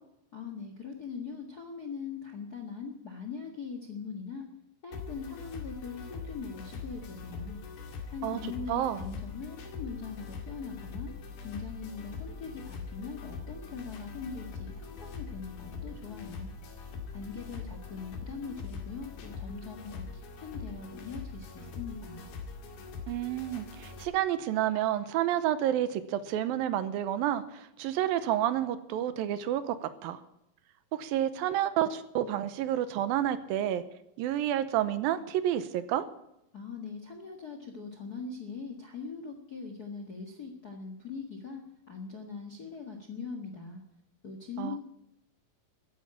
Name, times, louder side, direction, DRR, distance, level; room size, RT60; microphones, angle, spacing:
voice 1, 0.3-4.5 4.8-7.6 8.1-11.1 11.4-16.5 17.1-22.2 36.5-41.6 41.9-43.8 44.2-44.8, left 5 dB, 45° left, 4 dB, 1.2 m, -41 dB
sound 1, 4.9-24.0, left 4 dB, 85° left, 4.1 m, -42 dB
voice 2, 8.7-9.0 23.1-30.2 30.9-33.8 34.2-36.1 44.6-44.8, right 11 dB, 80° right, 13 dB, 2.6 m, -30 dB
14.0 x 10.5 x 8.6 m, 0.83 s
omnidirectional pair, 4.3 m